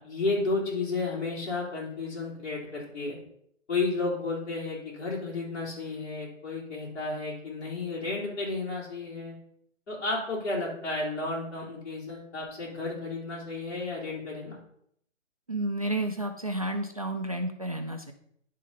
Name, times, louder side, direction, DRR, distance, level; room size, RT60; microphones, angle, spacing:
voice 1, 0.0-3.2 3.7-9.3 9.9-14.6, left 3 dB, 55° left, -4 dB, 3.8 m, -32 dB
voice 2, 15.5-18.1, right 1 dB, 30° right, 5 dB, 0.4 m, -31 dB
10.5 x 3.7 x 5.6 m, 0.70 s
hypercardioid pair, 160°, 39 cm